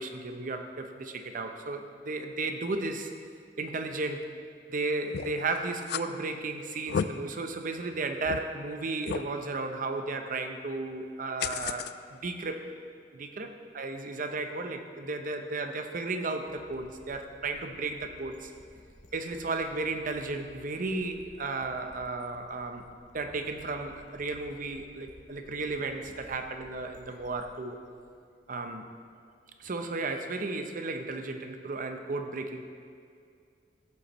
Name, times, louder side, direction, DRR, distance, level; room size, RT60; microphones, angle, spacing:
voice 1, 0.0-3.1 3.6-4.3 4.7-12.7 13.1-18.5 19.1-22.8 23.1-27.8 28.5-28.8 29.6-32.7, right 3 dB, 50° right, 6 dB, 0.7 m, -34 dB
sound 1, 5.1-5.4 5.8-6.0 6.7-7.1 7.6-7.7 8.2-8.4 9.1-9.3 11.4-11.9, left 7 dB, 60° left, 0.3 m, -32 dB
sound 2, 16.4-29.1, left 1 dB, 45° left, 1.0 m, -56 dB
14.0 x 8.0 x 3.1 m, 2.3 s
head